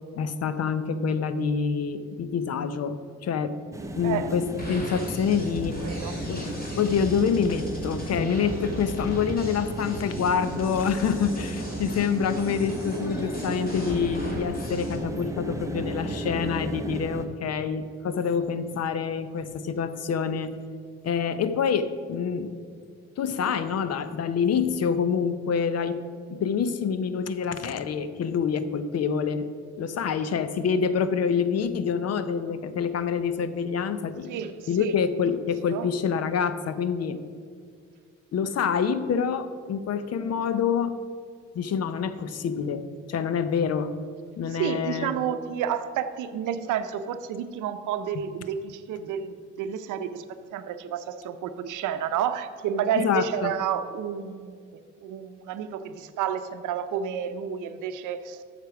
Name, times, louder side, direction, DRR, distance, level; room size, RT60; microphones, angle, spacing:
voice 1, 0.2-3.6 4.0-5.8 6.3-20.6 21.0-22.6 23.2-29.5 29.8-34.3 34.7-37.2 38.3-41.0 41.5-44.0 44.4-45.1 52.9-53.5, left 6 dB, 55° left, 12 dB, 0.7 m, -27 dB
sound 1, 3.7-17.3, right 1 dB, 10° right, 0.8 m, -34 dB
sound 2, 4.6-15.0, right 1 dB, 30° left, 2.4 m, -37 dB
voice 2, 5.8-6.2 34.3-34.9 35.7-35.9 44.6-58.4, right 8 dB, 85° right, 10 dB, 0.6 m, -30 dB
8.0 x 6.7 x 5.9 m, 2.2 s
cardioid pair, 90°, 30 cm